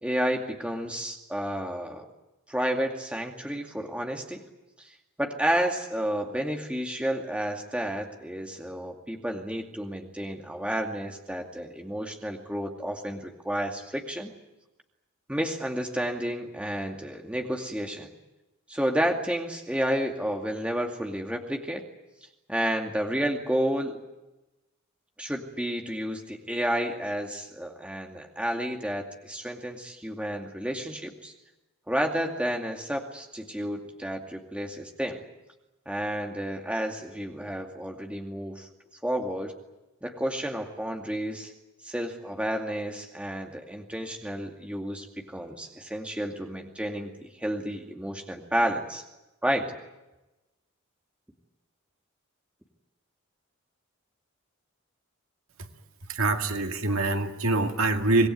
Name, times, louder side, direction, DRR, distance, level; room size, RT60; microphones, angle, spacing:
voice 1, 0.0-2.1 2.5-4.4 4.8-4.9 5.2-14.3 15.3-18.1 18.7-21.9 22.5-24.0 25.2-31.3 31.9-35.2 35.9-38.7 39.0-39.5 40.0-41.5 41.8-49.0 49.4-49.7, equal, 5° right, 2 dB, 2.3 m, -31 dB
voice 2, 56.1-58.3, right 2 dB, 75° right, 5 dB, 2.2 m, -25 dB
26.0 x 19.5 x 9.4 m, 1.0 s
head